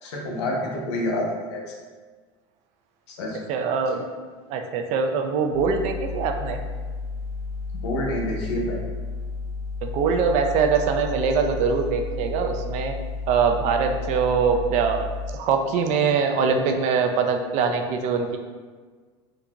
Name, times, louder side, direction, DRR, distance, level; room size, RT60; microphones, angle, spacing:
voice 1, 0.0-1.7 3.1-3.4 7.8-8.8, left 1 dB, 90° left, -1 dB, 0.8 m, -28 dB
voice 2, 3.5-4.1 4.5-6.6 9.8-13.0 13.3-15.1 15.3-18.4, right 5 dB, 55° right, 5 dB, 0.4 m, -23 dB
sound 1, 5.5-15.3, left 4 dB, 75° right, 0.9 m, -32 dB
3.8 x 2.3 x 2.9 m, 1.5 s
supercardioid pair, 115°, 14 cm